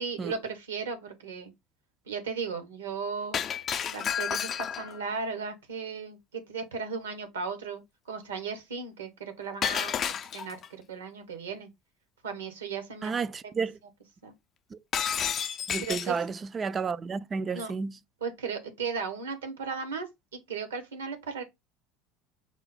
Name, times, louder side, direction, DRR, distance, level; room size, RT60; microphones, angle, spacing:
voice 1, 0.0-1.5 2.1-3.5 3.9-7.8 8.1-10.0 10.3-11.7 12.2-13.1 14.2-14.3 15.8-16.2 17.5-17.7 18.2-20.1 20.3-21.4, right 5 dB, 85° right, 0.9 m, -36 dB
Shatter, 3.3-5.0 9.6-10.7 14.9-16.2, left 8 dB, 40° left, 0.4 m, -31 dB
voice 2, 13.0-13.8 15.7-17.9, right 5 dB, 30° right, 0.3 m, -31 dB
4.8 x 2.1 x 4.0 m
hypercardioid pair, 75°, 0 cm